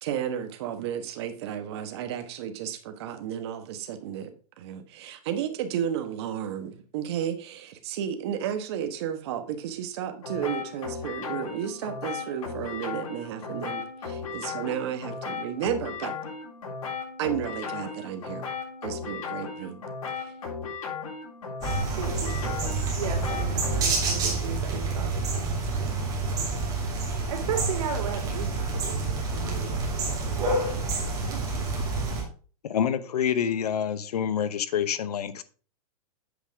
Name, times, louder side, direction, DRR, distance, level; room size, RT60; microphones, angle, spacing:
voice 1, 0.0-4.3 4.6-16.1 17.2-18.5 18.8-19.8 20.1-20.3, right 9 dB, 45° right, 1.2 m, -33 dB
sound 1, 10.2-23.8, left 5 dB, 65° left, 4.1 m, -36 dB
sound 2, 21.6-32.2, right 3 dB, 20° right, 2.6 m, -28 dB
voice 2, 22.0-26.6 27.1-31.6, right 7 dB, 70° right, 2.6 m, -37 dB
voice 3, 32.6-35.4, left 8 dB, 85° left, 0.9 m, -27 dB
8.2 x 6.9 x 3.5 m
hypercardioid pair, 160°, 19 cm